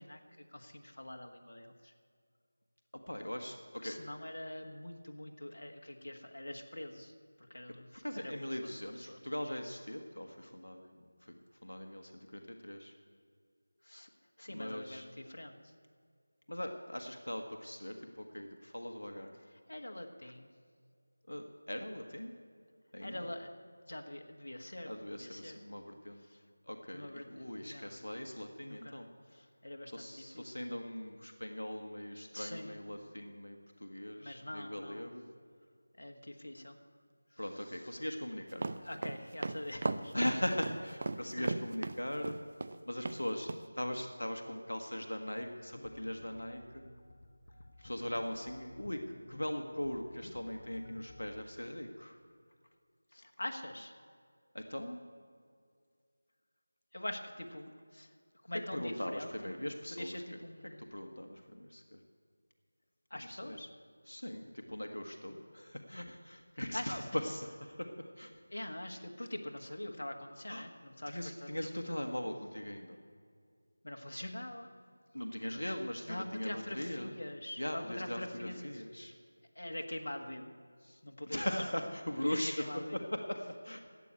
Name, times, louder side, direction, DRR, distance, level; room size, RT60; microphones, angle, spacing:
voice 1, 0.0-1.9 3.8-7.1 7.4-8.3 8.6-9.2 13.8-14.1 14.4-15.7 19.7-20.5 23.0-23.5 23.8-25.6 26.3-26.4 26.9-27.3 27.6-28.0 28.6-29.0 29.3-30.5 32.3-32.8 34.2-35.1 36.0-36.8 37.3-37.4 38.8-40.1 41.4-41.5 53.1-53.9 56.9-58.1 58.4-59.5 59.9-60.9 63.1-63.7 66.7-67.2 68.5-71.5 71.9-72.0 73.8-74.7 75.6-75.7 76.1-78.8 79.5-80.5 80.8-81.5 82.2-83.0, left 1 dB, 65° left, 3 dB, 1.5 m, -44 dB
voice 2, 3.1-4.0 8.0-11.4 11.6-12.9 14.5-15.0 16.5-19.3 21.3-22.3 22.9-23.3 24.9-26.2 26.7-29.1 29.9-35.2 37.4-38.6 40.1-42.4 42.9-43.5 43.7-46.8 47.8-52.2 54.5-55.0 58.7-60.4 60.8-62.0 63.1-63.6 64.0-68.3 68.6-68.7 70.5-70.7 71.1-73.0 75.1-77.1 77.6-79.1 81.2-82.7 82.9-83.4 83.6-83.8, left 1 dB, 90° left, 4 dB, 1.2 m, -40 dB
sound 1, 38.5-42.8 43.0-43.2 43.5-43.6, right 3 dB, 40° right, 0.5 m, -36 dB
sound 2, 45.7-51.4, left 1 dB, 40° left, 1.1 m, -54 dB
12.0 x 8.4 x 8.6 m, 2.1 s
figure-of-eight pair, 170°, 0 cm